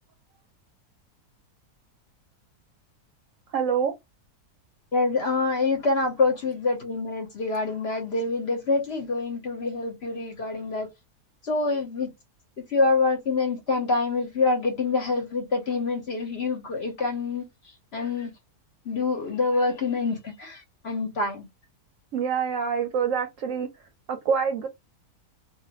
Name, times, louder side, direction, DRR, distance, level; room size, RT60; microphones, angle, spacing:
voice 1, 3.5-3.9 22.1-23.7 24.1-24.7, right 6 dB, 70° right, 0.8 m, -26 dB
voice 2, 4.9-10.9 11.4-12.1 12.7-17.5 17.9-18.3 18.9-21.5, left 3 dB, 50° left, 0.9 m, -26 dB
2.5 x 2.4 x 2.8 m
omnidirectional pair, 1.7 m